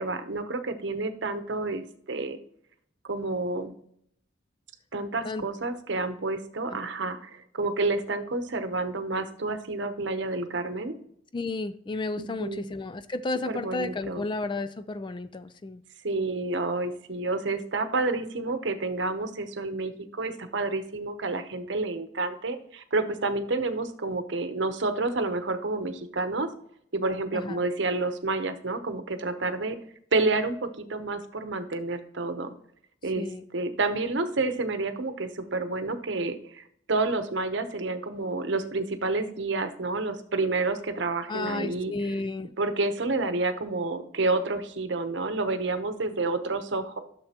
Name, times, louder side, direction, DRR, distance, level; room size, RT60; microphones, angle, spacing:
voice 1, 0.0-2.4 3.1-3.7 4.9-10.9 12.2-12.6 13.5-14.2 16.0-26.5 26.9-29.8 30.1-32.5 33.0-33.2 33.5-41.9 42.6-47.0, right 3 dB, 65° right, 9 dB, 0.8 m, -29 dB
voice 2, 11.3-15.8 27.3-27.6 33.2-33.4 41.3-42.5, left 2 dB, 25° left, 13 dB, 0.3 m, -32 dB
12.0 x 6.7 x 2.9 m, 0.68 s
head